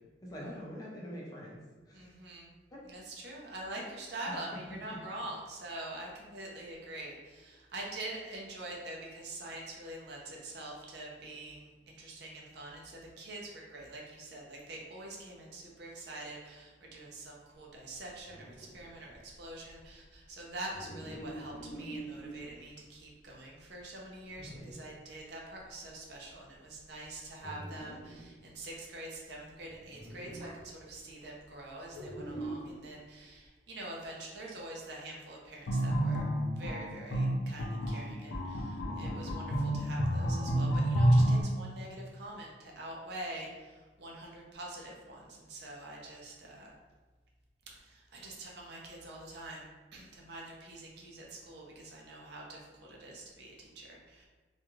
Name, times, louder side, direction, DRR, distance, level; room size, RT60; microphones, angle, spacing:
voice 1, 0.2-1.6 1.9-2.1 2.7-2.8 3.1-3.2 3.8-3.9 21.0-21.2 38.9-39.3, equal, 20° left, -5 dB, 0.5 m, -45 dB
voice 2, 1.9-2.5 2.8-46.7 47.7-54.3, right 1 dB, 60° right, -2 dB, 0.6 m, -45 dB
sound 1, 18.1-22.7 23.3-23.4 23.8-23.9 24.3-24.9 25.2-25.3 25.5-25.9 26.3-26.6 27.0-28.4 29.3-29.4 29.7-30.6 31.9-32.9, right 2 dB, 20° right, 0.8 m, -45 dB
sound 2, 35.7-41.4, right 1 dB, 75° left, 0.4 m, -28 dB
2.4 x 2.3 x 3.0 m, 1.3 s
head